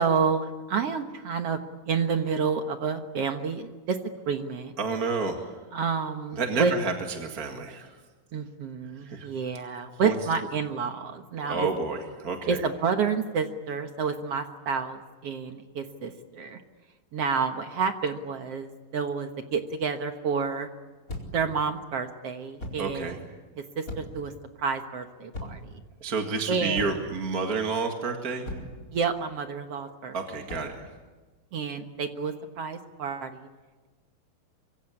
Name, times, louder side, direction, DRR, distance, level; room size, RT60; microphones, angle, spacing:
voice 1, 0.0-1.6 1.9-4.7 5.7-6.7 8.3-11.7 12.5-16.6 17.1-20.7 21.3-23.1 23.6-24.3 24.6-25.7 26.5-27.0 28.9-30.1 31.5-33.5, right 5 dB, 60° right, 7 dB, 1.7 m, -29 dB
voice 2, 4.8-5.6 6.3-8.0 8.9-9.3 10.0-10.1 11.4-12.6 22.8-23.2 26.0-28.5 30.1-30.9, right 4 dB, 35° right, 3 dB, 1.7 m, -30 dB
sound 1, 21.1-21.5 22.6-22.9 23.9-24.3 25.3-25.7 26.7-27.2 28.5-28.8 30.5-30.8, left 1 dB, 20° left, 4.6 m, -38 dB
25.5 x 24.0 x 9.8 m, 1.3 s
omnidirectional pair, 4.3 m